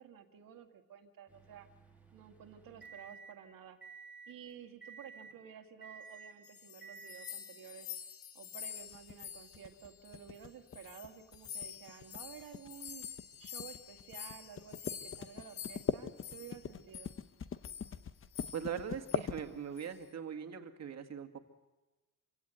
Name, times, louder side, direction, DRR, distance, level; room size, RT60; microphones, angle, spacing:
voice 1, 0.0-1.7 2.1-3.8 4.3-7.9 8.3-13.1 13.4-17.1, right 8 dB, 75° right, 6 dB, 2.2 m, -52 dB
sound 1, 1.3-3.3 3.8-4.3 4.8-5.3 5.8-6.3 6.8-7.3, right 5 dB, 5° right, 2.9 m, -53 dB
sound 2, 6.2-10.4 10.7-16.6 16.9-17.2 17.6-18.0 18.3-18.8 19.1-19.3 19.8-20.0, left 8 dB, 80° left, 2.7 m, -48 dB
sound 3, 8.9-20.0, left 7 dB, 40° left, 0.9 m, -41 dB
voice 2, 18.5-21.4, right 7 dB, 50° right, 6 dB, 2.0 m, -41 dB
26.0 x 17.0 x 8.3 m, 1.1 s
cardioid pair, 125°, 34 cm